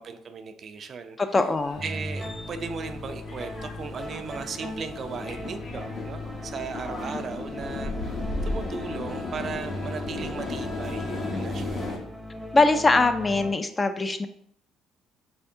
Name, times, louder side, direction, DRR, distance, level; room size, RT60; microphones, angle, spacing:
voice 1, 0.0-1.2 1.8-12.0, right 5 dB, 50° right, 8 dB, 0.4 m, -37 dB
voice 2, 1.2-1.8 11.3-11.4 12.5-14.3, left 3 dB, 25° left, 9 dB, 0.4 m, -22 dB
sound 1, 1.5-12.0, left 2 dB, 50° left, 0.9 m, -35 dB
sound 2, 1.8-13.5, equal, 5° right, 0.7 m, -38 dB
3.4 x 3.4 x 2.7 m, 0.67 s
supercardioid pair, 70°, 0 cm